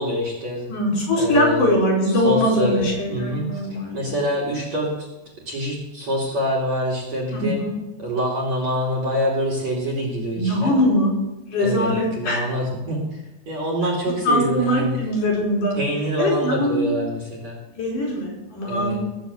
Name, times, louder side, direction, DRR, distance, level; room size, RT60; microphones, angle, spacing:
voice 1, 0.0-0.7 1.2-1.6 2.2-3.6 3.9-4.9 5.5-7.6 8.0-10.7 11.6-15.0 15.8-17.6 18.7-19.0, equal, 40° right, -3 dB, 3.6 m, -25 dB
voice 2, 0.7-4.1 7.3-7.7 10.4-11.1 11.5-12.5 14.2-15.8 16.2-17.0 17.8-19.0, equal, 45° left, -2 dB, 6.3 m, -21 dB
20.5 x 7.0 x 8.0 m, 1.0 s
omnidirectional pair, 5.2 m